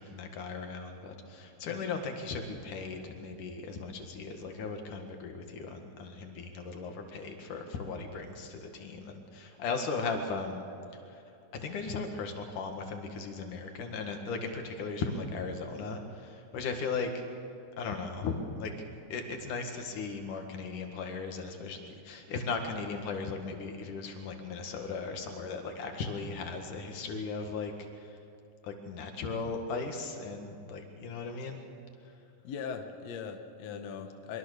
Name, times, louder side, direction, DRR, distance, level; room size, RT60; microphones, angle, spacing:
voice 1, 0.0-10.7 11.1-11.2 11.5-17.1 17.8-18.7 19.1-28.2 28.6-31.6, left 4 dB, 85° left, 4 dB, 3.4 m, -37 dB
voice 2, 32.4-34.4, left 6 dB, 65° left, 5 dB, 2.3 m, -40 dB
24.0 x 23.5 x 6.7 m, 2.6 s
omnidirectional pair, 3.5 m